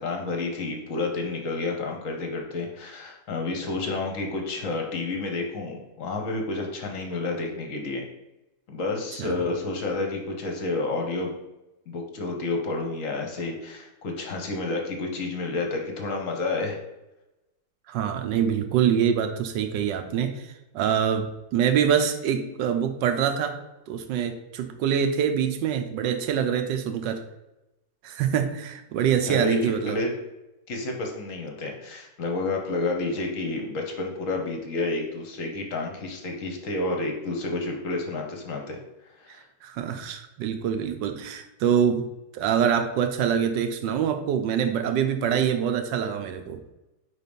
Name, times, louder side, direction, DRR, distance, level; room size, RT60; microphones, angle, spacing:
voice 1, 0.0-8.0 8.7-11.3 11.9-16.8 29.2-30.1 30.7-38.8 39.2-39.5, left 3 dB, 50° left, 2 dB, 1.1 m, -30 dB
voice 2, 17.9-23.6 23.9-27.2 28.0-30.0 39.6-42.1 42.3-46.6, right 8 dB, 80° right, 7 dB, 1.3 m, -25 dB
5.0 x 4.1 x 5.2 m, 0.96 s
omnidirectional pair, 2.0 m